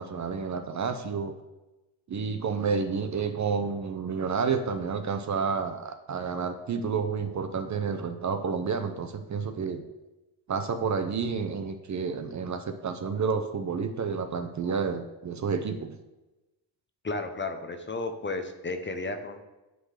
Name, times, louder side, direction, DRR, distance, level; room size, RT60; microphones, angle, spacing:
voice 1, 0.0-1.3 2.1-9.8 10.5-16.0, right 5 dB, 40° right, 7 dB, 0.8 m, -30 dB
voice 2, 17.0-19.4, left 3 dB, 25° left, 6 dB, 0.8 m, -33 dB
9.6 x 3.9 x 6.5 m, 1.0 s
cardioid pair, 110°, 46 cm